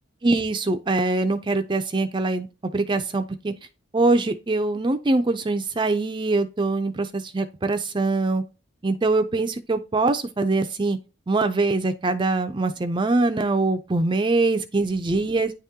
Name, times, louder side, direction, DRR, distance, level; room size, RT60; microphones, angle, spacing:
voice 1, 0.2-2.5 2.7-3.5 3.9-8.4 8.8-11.0 11.3-15.5, right 3 dB, 25° right, 0.4 m, -23 dB
9.6 x 3.6 x 2.8 m
head